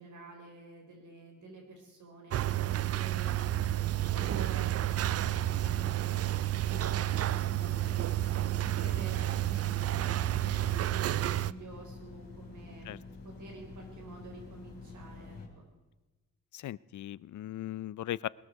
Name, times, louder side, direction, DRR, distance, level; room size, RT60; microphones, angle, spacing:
voice 1, 0.0-2.4 2.9-8.2 8.6-9.5 9.8-12.9 13.2-15.6, right 2 dB, 75° right, 1 dB, 4.8 m, -49 dB
sound 1, 2.3-11.5, right 13 dB, 50° right, 0.4 m, -30 dB
sound 2, 6.6-15.5, left 3 dB, 55° left, 4.0 m, -48 dB
voice 2, 16.5-18.3, left 13 dB, 70° left, 21 dB, 0.5 m, -38 dB
20.5 x 13.0 x 4.7 m, 1.1 s
cardioid pair, 95°, 31 cm